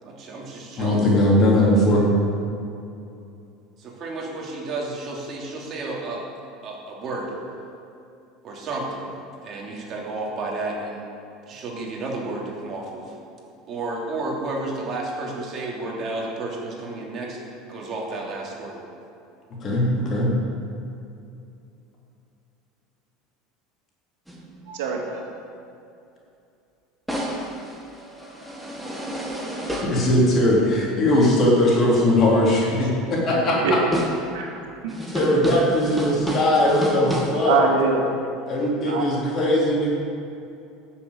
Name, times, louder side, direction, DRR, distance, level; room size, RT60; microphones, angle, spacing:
voice 1, 0.0-1.0 3.8-6.2 6.6-7.4 8.4-9.1 9.4-11.1 11.5-13.1 13.6-17.4 17.7-18.8, right 2 dB, 40° right, -2 dB, 2.9 m, -31 dB
voice 2, 0.8-2.0 19.6-20.3 29.9-33.8 35.1-37.6 38.5-39.9, left 1 dB, 35° left, -4 dB, 3.6 m, -19 dB
sound 1, 24.3-25.0 27.1-30.0 33.5-33.6 33.9-34.3 34.9-37.2, right 1 dB, 5° right, 1.9 m, -30 dB
voice 3, 24.7-25.3 33.3-33.8 34.3-35.0 37.4-38.0 38.9-39.1, right 5 dB, 85° right, 0 dB, 2.2 m, -24 dB
12.0 x 7.0 x 8.2 m, 2.7 s
supercardioid pair, 130°, 0 cm